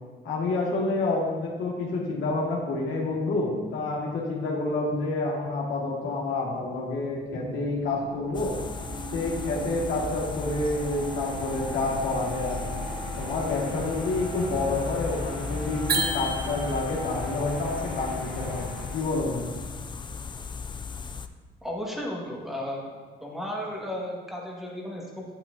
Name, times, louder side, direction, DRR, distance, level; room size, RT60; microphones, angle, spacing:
voice 1, 0.2-8.6 9.1-12.8 13.2-19.6, left 2 dB, 75° left, -3 dB, 1.7 m, -28 dB
sound 1, 6.7-19.8, right 1 dB, 80° right, 1.4 m, -39 dB
sound 2, 8.3-21.3, left 5 dB, 25° left, 0.4 m, -36 dB
sound 3, 15.9-17.0, right 3 dB, 55° right, 1.1 m, -29 dB
voice 2, 21.6-22.9 23.2-25.2, left 1 dB, ahead, -3 dB, 1.5 m, -34 dB
8.6 x 8.3 x 2.6 m, 1.4 s
cardioid pair, 90°, 20 cm